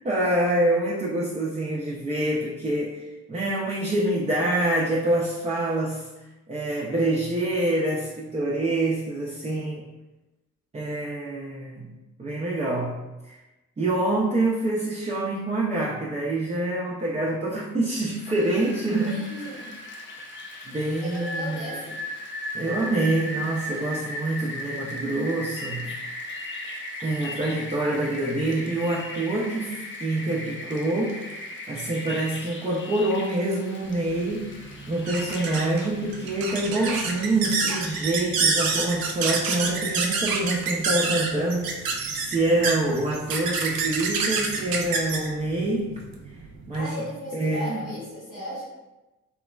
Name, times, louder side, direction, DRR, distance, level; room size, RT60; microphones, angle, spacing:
voice 1, 0.0-6.1 6.5-9.9 10.7-11.9 12.2-13.0 13.3-13.4 13.8-19.6 20.6-21.6 22.5-25.9 27.0-45.9 46.7-47.0 47.3-47.9, right 2 dB, 20° right, -4 dB, 0.4 m, -26 dB
Rain, 18.0-37.5, left 1 dB, 30° left, 0.6 m, -37 dB
voice 2, 19.0-19.7 21.0-21.9 42.4-42.5 46.7-48.6, equal, 70° left, -11 dB, 1.2 m, -36 dB
sound 1, 33.9-46.8, right 4 dB, 65° right, 0.5 m, -28 dB
3.0 x 2.1 x 2.3 m, 1.1 s
hypercardioid pair, 40°, 37 cm